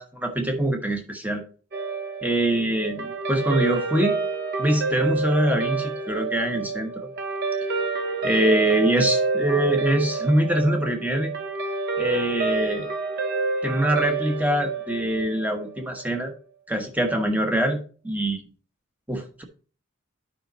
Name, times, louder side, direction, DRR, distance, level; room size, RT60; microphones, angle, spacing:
voice 1, 0.0-1.4 2.2-4.2 4.6-7.1 8.2-11.3 12.0-12.9 13.6-16.3 16.7-18.4 19.1-19.4, right 1 dB, 5° right, 4 dB, 1.0 m, -24 dB
Guitar, 1.7-16.3, right 3 dB, 50° right, 1.1 m, -28 dB
9.4 x 5.2 x 4.0 m, 0.39 s
head